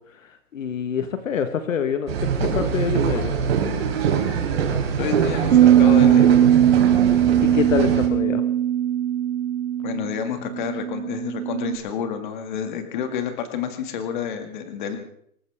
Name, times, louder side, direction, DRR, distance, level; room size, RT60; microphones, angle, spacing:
voice 1, 0.5-2.1 2.4-3.4 7.4-8.4, left 7 dB, 60° left, 8 dB, 1.6 m, -25 dB
sound 1, 2.1-8.1, right 6 dB, 45° right, 4.6 m, -24 dB
voice 2, 5.0-6.4 9.8-15.0, left 7 dB, 35° left, 6 dB, 2.3 m, -29 dB
sound 2, 5.5-11.8, right 10 dB, 75° right, 2.5 m, -18 dB
26.5 x 14.0 x 3.6 m, 0.68 s
hypercardioid pair, 170°, 44 cm